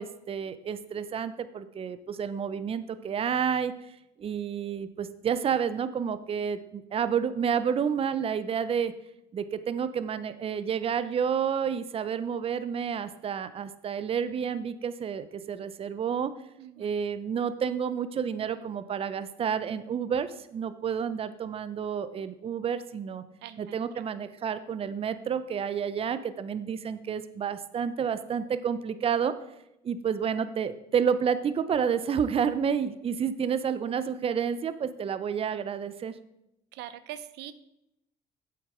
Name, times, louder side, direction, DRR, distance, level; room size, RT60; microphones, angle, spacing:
voice 1, 0.0-3.7 4.2-8.9 9.3-16.3 16.8-23.2 23.6-29.3 29.8-36.1, right 7 dB, 35° right, 13 dB, 0.6 m, -30 dB
voice 2, 16.6-16.9 23.4-24.0 36.7-37.5, right 12 dB, 85° right, 14 dB, 0.6 m, -43 dB
8.0 x 8.0 x 4.9 m, 0.83 s
cardioid pair, 110°, 17 cm